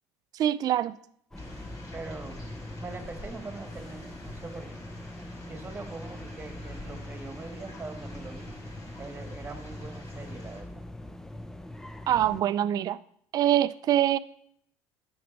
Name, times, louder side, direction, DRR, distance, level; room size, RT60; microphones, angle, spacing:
voice 1, 0.3-0.9 12.1-13.0 13.3-14.2, right 11 dB, 50° right, 16 dB, 0.5 m, -24 dB
sound 1, 1.3-10.6, left 1 dB, 45° left, 2.9 m, -48 dB
sound 2, 1.3-12.4, left 1 dB, 5° left, 0.7 m, -42 dB
voice 2, 1.9-2.4 2.8-4.7 5.5-8.5 9.0-10.8, right 3 dB, 20° right, 7 dB, 1.7 m, -42 dB
9.6 x 7.1 x 5.3 m, 0.68 s
supercardioid pair, 90°, 8 cm